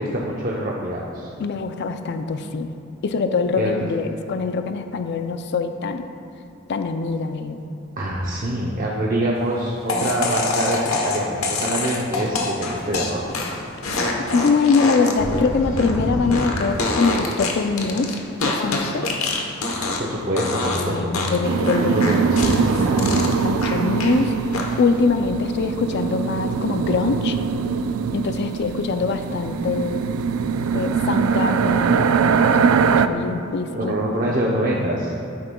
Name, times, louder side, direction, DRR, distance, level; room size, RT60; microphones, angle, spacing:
voice 1, 0.0-1.3 3.6-3.8 8.0-13.2 19.7-21.6 21.8-23.2 33.7-35.2, right 1 dB, 40° right, -3 dB, 0.7 m, -25 dB
voice 2, 1.4-2.8 3.0-6.1 6.7-7.6 14.3-19.1 20.8-22.6 23.1-24.3 24.8-27.4 28.1-30.0 30.7-33.9 34.3-34.4 34.7-35.0, left 4 dB, 55° left, 8 dB, 0.4 m, -23 dB
sound 1, 9.9-20.1 20.4-20.8 21.1-24.2 24.5-25.0, left 2 dB, 85° left, 1.0 m, -25 dB
sound 2, 21.4-33.1, right 6 dB, 85° right, 0.3 m, -22 dB
11.5 x 9.4 x 2.3 m, 2.8 s
head